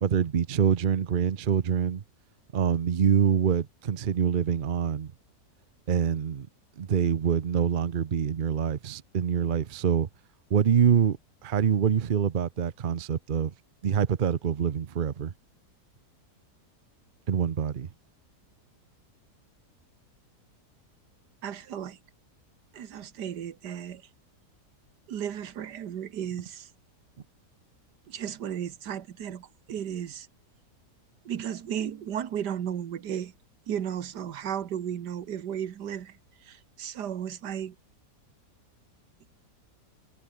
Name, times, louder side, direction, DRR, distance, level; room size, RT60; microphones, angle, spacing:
voice 1, 0.0-2.0 2.5-5.1 5.9-6.5 6.8-10.1 10.5-11.2 11.4-13.5 13.8-15.3 17.3-17.9, right 7 dB, 45° right, 0.7 m, -25 dB
voice 2, 21.4-22.0 22.7-24.0 25.1-26.7 28.1-30.3 31.3-33.3 33.7-37.8 39.2-39.3, right 9 dB, 85° right, 1.8 m, -34 dB
omnidirectional pair, 1.7 m